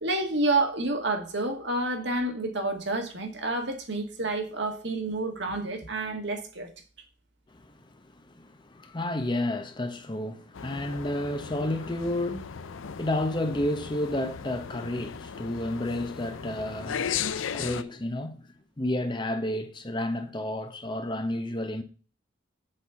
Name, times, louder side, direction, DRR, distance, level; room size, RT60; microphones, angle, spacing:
voice 1, 0.0-6.7, right 2 dB, 60° right, 1.7 m, -29 dB
voice 2, 7.5-17.2 17.5-18.4 18.8-21.8, left 1 dB, 25° left, 0.8 m, -31 dB
sound 1, 10.5-17.8, left 7 dB, 85° left, 0.5 m, -36 dB
7.6 x 4.3 x 5.6 m
head